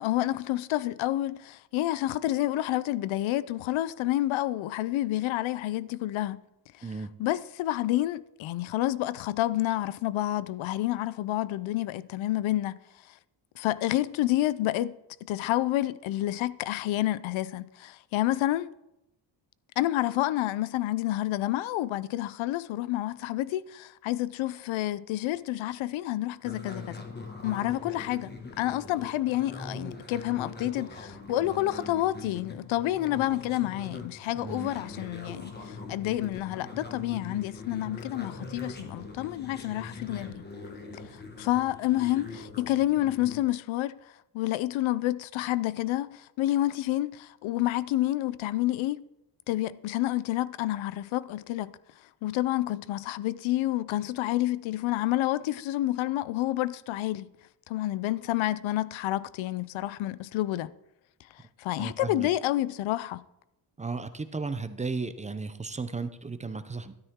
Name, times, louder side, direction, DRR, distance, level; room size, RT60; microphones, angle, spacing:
voice 1, 0.0-6.4 6.8-6.9 7.2-12.8 13.6-18.7 19.8-27.0 27.4-40.5 41.1-44.0 44.3-49.0 49.5-51.7 52.2-57.3 57.7-60.7 61.6-63.2, left 15 dB, 85° left, 0.6 m, -29 dB
sound 1, 26.4-43.4, left 3 dB, 20° left, 1.7 m, -42 dB
voice 2, 34.3-34.7 61.8-62.3 63.8-66.9, right 4 dB, 15° right, 0.5 m, -35 dB
13.0 x 12.5 x 3.6 m
cardioid pair, 145°, 46 cm